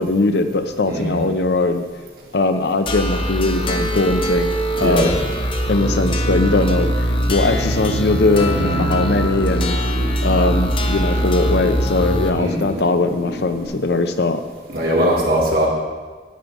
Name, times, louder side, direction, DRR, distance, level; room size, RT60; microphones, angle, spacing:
voice 1, 0.0-1.9 2.3-5.2 5.7-9.8 10.2-14.4, left 2 dB, 70° left, 9 dB, 0.6 m, -20 dB
voice 2, 0.8-1.2 4.8-5.1 8.5-8.9 12.3-12.6 14.7-15.7, equal, 55° right, -3 dB, 2.2 m, -20 dB
sound 1, 2.9-12.3, equal, 30° left, 0.7 m, -22 dB
sound 2, 5.6-13.7, equal, 30° right, 3.5 m, -30 dB
9.3 x 8.4 x 4.6 m, 1.4 s
head